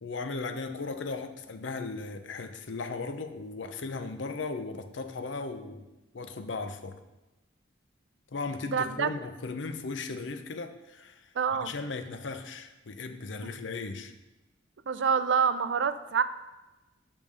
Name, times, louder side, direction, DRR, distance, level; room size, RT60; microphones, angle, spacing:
voice 1, 0.0-5.9 6.1-7.0 8.3-14.1, left 3 dB, 80° left, 8 dB, 0.7 m, -37 dB
voice 2, 8.7-9.1 11.4-11.7 14.9-16.2, right 6 dB, 70° right, 12 dB, 0.4 m, -26 dB
5.4 x 5.3 x 6.4 m, 1.1 s
head